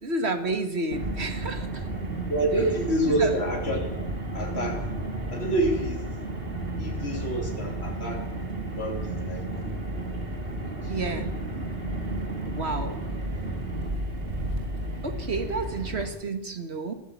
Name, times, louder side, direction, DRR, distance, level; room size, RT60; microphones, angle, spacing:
voice 1, 0.0-1.9 3.1-3.4 10.9-11.7 12.4-13.0 15.0-16.9, right 3 dB, 80° right, 7 dB, 2.1 m, -31 dB
Car, 0.9-16.1, right 1 dB, 60° right, 3.0 m, -32 dB
voice 2, 2.3-4.1 4.3-4.9 5.3-6.0 6.8-8.2 8.6-9.8 10.9-11.0, right 1 dB, 75° left, 1 dB, 3.4 m, -28 dB
22.0 x 14.0 x 8.6 m, 0.93 s
omnidirectional pair, 1.1 m